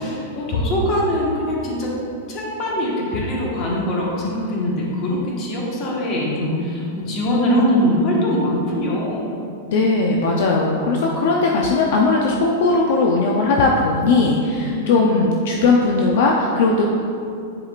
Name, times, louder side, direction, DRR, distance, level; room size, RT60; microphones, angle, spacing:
voice 1, 0.0-2.0 2.3-9.3 14.7-15.0, equal, 30° left, -4 dB, 1.3 m, -22 dB
voice 2, 9.7-16.8, left 3 dB, 60° left, 0 dB, 0.6 m, -18 dB
10.5 x 4.8 x 2.5 m, 2.5 s
supercardioid pair, 165°, 0 cm